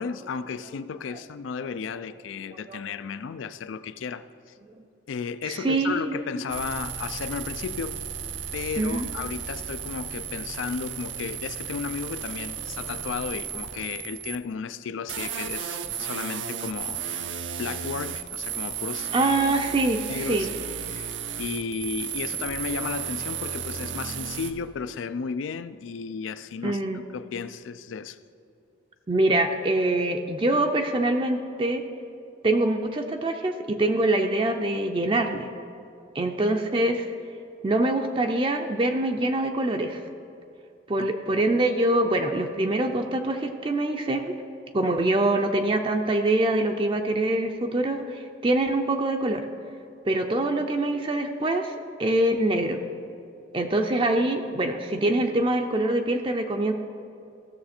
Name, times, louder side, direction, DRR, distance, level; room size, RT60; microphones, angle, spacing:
voice 1, 0.0-4.2 5.1-8.0 8.5-17.0 17.6-19.1 20.1-20.5 20.9-28.2 41.0-41.1, left 5 dB, 90° left, 0.4 m, -34 dB
voice 2, 5.4-6.2 8.8-9.1 19.1-20.5 26.6-27.0 29.1-31.8 32.4-35.5 36.1-37.1 37.6-40.0 40.9-44.3 44.7-49.5 50.1-51.7 52.0-52.8 53.5-56.7, right 2 dB, 25° right, 0.4 m, -24 dB
sound 1, 6.5-14.4 15.1-24.5, right 8 dB, 75° right, 0.6 m, -34 dB
15.5 x 6.7 x 4.3 m
head